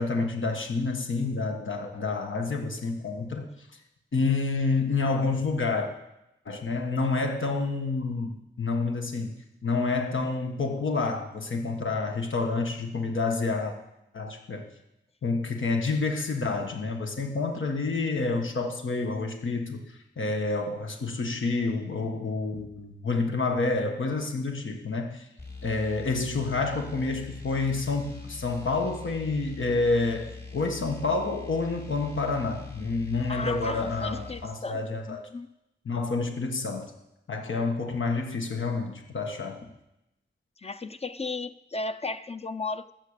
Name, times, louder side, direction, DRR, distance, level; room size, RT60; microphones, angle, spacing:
voice 1, 0.0-3.5 4.1-5.9 6.4-9.3 9.6-13.7 14.1-14.7 15.2-19.8 20.2-25.3 25.6-35.3 35.8-36.9 37.3-39.7, left 3 dB, 90° left, 3 dB, 1.4 m, -28 dB
sound 1, 25.4-34.5, left 4 dB, 55° left, 4.9 m, -43 dB
voice 2, 33.3-34.8 35.1-35.5 40.6-42.9, left 3 dB, 30° left, 10 dB, 0.5 m, -35 dB
14.5 x 7.6 x 6.6 m, 0.89 s
wide cardioid pair, 85°, 20 cm